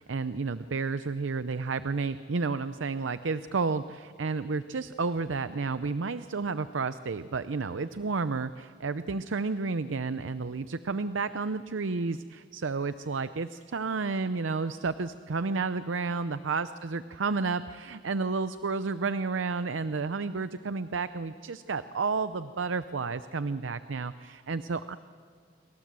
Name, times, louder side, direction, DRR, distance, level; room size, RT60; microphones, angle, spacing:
voice 1, 0.0-25.0, right 4 dB, 80° right, 13 dB, 0.6 m, -31 dB
27.5 x 24.5 x 7.5 m, 2.1 s
head